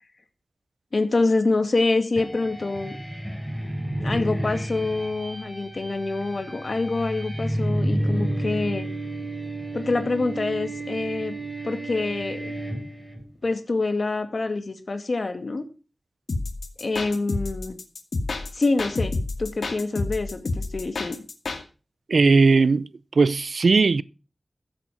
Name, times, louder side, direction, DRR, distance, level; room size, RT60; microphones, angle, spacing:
voice 1, 0.9-3.0 4.0-8.9 9.7-11.3 11.6-12.5 13.4-15.7 16.8-17.8 18.5-21.2, left 3 dB, 60° left, 2.1 m, -26 dB
sound 1, 2.2-13.2, right 1 dB, 5° right, 6.0 m, -31 dB
sound 2, 16.3-21.6, left 3 dB, 85° left, 2.2 m, -29 dB
voice 2, 22.1-22.9 23.1-24.0, right 4 dB, 80° right, 0.5 m, -18 dB
14.5 x 8.2 x 5.8 m
wide cardioid pair, 60°, 0 cm